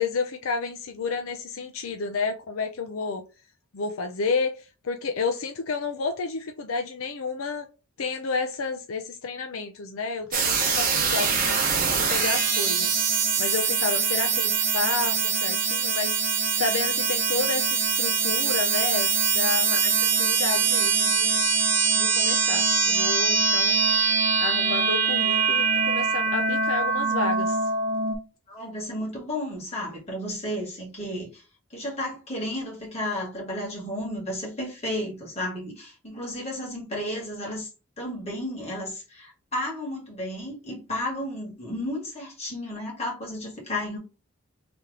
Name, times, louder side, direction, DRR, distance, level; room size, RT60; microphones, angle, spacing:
voice 1, 0.0-3.2 3.7-7.7 8.0-11.6 11.9-12.9 13.4-16.1 16.6-21.4 22.0-23.8 24.4-27.6, left 4 dB, 75° left, 0.5 m, -31 dB
sound 1, 10.3-28.2, right 5 dB, 40° right, 1.0 m, -23 dB
voice 2, 28.5-31.4 31.7-37.7 38.0-44.0, left 1 dB, 30° left, 1.8 m, -33 dB
3.4 x 2.9 x 3.6 m
head